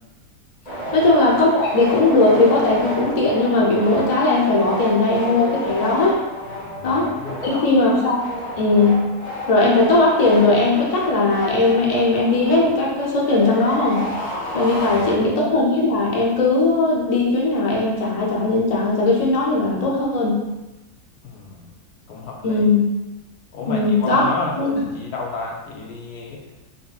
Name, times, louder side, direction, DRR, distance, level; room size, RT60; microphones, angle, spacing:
sound 1, 0.7-15.6, equal, 25° left, 1.3 m, -31 dB
voice 1, 0.9-6.2 6.8-7.1 7.4-8.2 8.6-9.0 9.5-14.0 14.5-20.4 22.4-22.8 23.7-24.2 24.6-24.7, left 2 dB, 55° left, -4 dB, 0.4 m, -18 dB
voice 2, 6.5-7.8 14.6-15.0 21.2-21.7 22.1-22.7 23.5-26.4, left 3 dB, 75° left, -1 dB, 1.2 m, -32 dB
3.9 x 2.9 x 2.4 m, 1.0 s
omnidirectional pair, 1.7 m